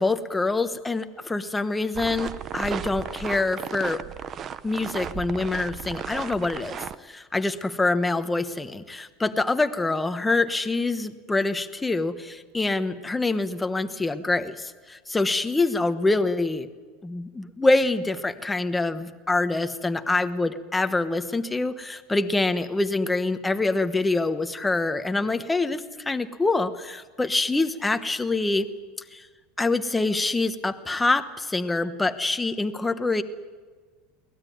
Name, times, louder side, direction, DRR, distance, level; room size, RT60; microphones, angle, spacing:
voice 1, 0.0-4.0 4.6-16.7 17.0-28.7 29.1-29.3 29.6-33.2, left 3 dB, 10° left, 9 dB, 1.0 m, -25 dB
sound 1, 1.9-7.0, right 8 dB, 25° right, 0.6 m, -35 dB
22.5 x 18.5 x 9.4 m, 1.5 s
supercardioid pair, 160°, 0 cm